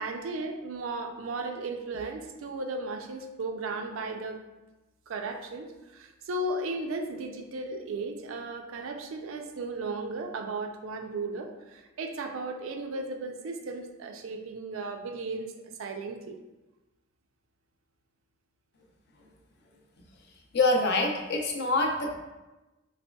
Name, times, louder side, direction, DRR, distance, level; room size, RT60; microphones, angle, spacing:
voice 1, 0.0-4.4 5.1-5.7 5.9-15.5 15.8-16.4, right 2 dB, 70° right, 5 dB, 0.4 m, -35 dB
voice 2, 20.5-22.2, left 2 dB, 55° left, 1 dB, 0.5 m, -25 dB
4.0 x 3.1 x 2.2 m, 1.1 s
head